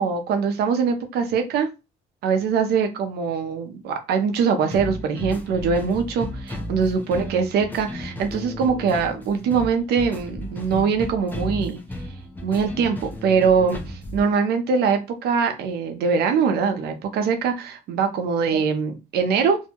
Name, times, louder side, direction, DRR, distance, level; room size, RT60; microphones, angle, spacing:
voice 1, 0.0-1.7 2.2-11.8 12.4-19.6, right 5 dB, 70° right, 7 dB, 0.6 m, -22 dB
sound 1, 4.7-14.3, left 1 dB, 10° left, 0.6 m, -34 dB
2.7 x 2.2 x 2.9 m, 0.27 s
cardioid pair, 110°, 17 cm